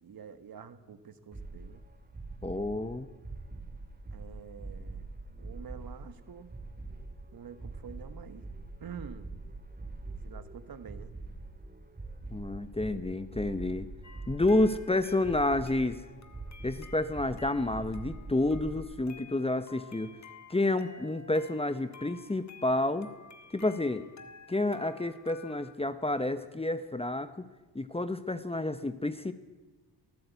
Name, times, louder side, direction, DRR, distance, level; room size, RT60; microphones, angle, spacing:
voice 1, 0.0-1.9 4.1-5.1 5.4-6.5 7.3-8.4 8.8-9.3 10.2-11.1, right 7 dB, 55° right, 11 dB, 1.6 m, -47 dB
sound 1, 1.3-18.8, right 3 dB, 20° right, 2.9 m, -44 dB
voice 2, 2.4-3.1 12.3-13.9 14.3-16.0 16.6-20.1 20.5-23.1 23.5-24.0 24.5-27.4 27.7-29.3, left 2 dB, 15° left, 11 dB, 1.0 m, -29 dB
sound 2, 14.0-25.7, left 5 dB, 40° left, 1.7 m, -53 dB
23.5 x 14.5 x 8.2 m, 1.2 s
cardioid pair, 105°, 42 cm